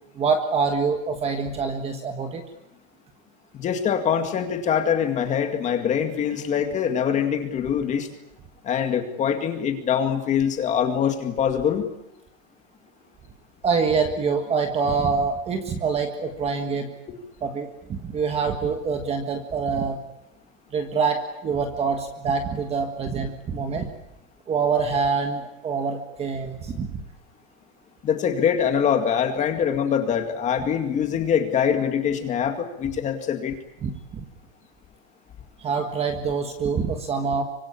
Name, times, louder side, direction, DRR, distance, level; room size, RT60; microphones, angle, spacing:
voice 1, 0.1-2.4 13.6-16.9 17.4-20.0 20.7-23.9 24.5-27.0 33.8-34.2 35.6-37.4, right 5 dB, 15° right, 6 dB, 1.6 m, -25 dB
voice 2, 3.5-8.1 8.6-11.8 28.0-33.6, left 8 dB, 20° left, 6 dB, 2.2 m, -24 dB
25.0 x 25.0 x 8.5 m, 0.86 s
supercardioid pair, 175°, 40 cm